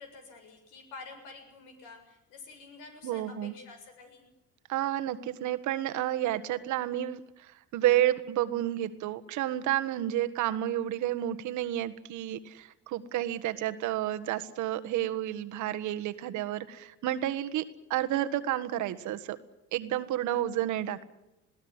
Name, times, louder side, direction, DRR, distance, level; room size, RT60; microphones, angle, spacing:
voice 1, 0.0-4.3, left 4 dB, 80° left, 4 dB, 7.2 m, -48 dB
voice 2, 3.0-3.5 4.7-7.2 7.7-17.6 17.9-19.4 19.7-21.0, right 13 dB, 65° right, 10 dB, 1.6 m, -30 dB
20.5 x 16.5 x 9.7 m, 0.95 s
supercardioid pair, 80°, 32 cm